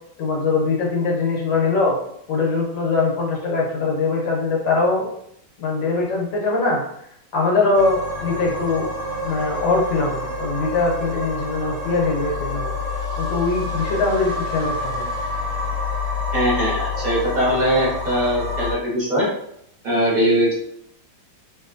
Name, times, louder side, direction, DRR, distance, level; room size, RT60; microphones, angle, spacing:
voice 1, 0.2-2.0 2.3-5.1 5.6-6.8 7.3-8.9 9.2-12.7 13.2-15.1, left 3 dB, 70° left, -1 dB, 1.4 m, -22 dB
sound 1, 7.7-18.7, left 3 dB, 70° right, 0.7 m, -28 dB
voice 2, 16.3-19.3 19.8-20.5, equal, 30° right, -6 dB, 1.0 m, -20 dB
3.0 x 3.0 x 2.4 m, 0.73 s
omnidirectional pair, 2.2 m